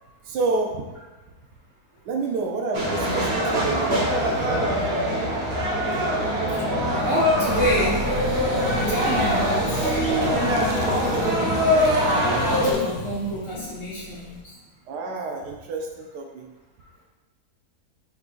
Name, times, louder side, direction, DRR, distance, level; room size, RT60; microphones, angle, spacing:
voice 1, 0.2-0.8 2.1-3.9 14.9-16.5, right 3 dB, 85° right, 1 dB, 1.2 m, -29 dB
sound 1, 2.7-12.7, equal, 45° right, 1.2 m, -23 dB
voice 2, 3.5-4.1 4.7-4.8 7.0-8.0 8.3-8.4 8.8-10.0 10.7-11.6 12.4-14.4, right 1 dB, 25° right, -9 dB, 0.9 m, -28 dB
sound 2, 6.4-14.4, left 3 dB, 90° left, 1.3 m, -33 dB
5.8 x 3.7 x 2.4 m, 1.2 s
omnidirectional pair, 1.7 m